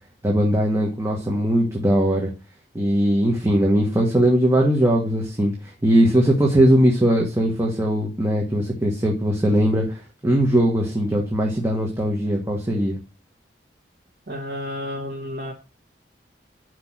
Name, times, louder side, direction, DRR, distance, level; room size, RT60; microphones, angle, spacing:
voice 1, 0.2-2.3 2.7-5.5 5.8-13.0, equal, 15° right, -1 dB, 1.4 m, -20 dB
voice 2, 14.3-15.5, left 1 dB, 55° right, -3 dB, 1.6 m, -31 dB
6.1 x 4.8 x 6.1 m, 0.32 s
head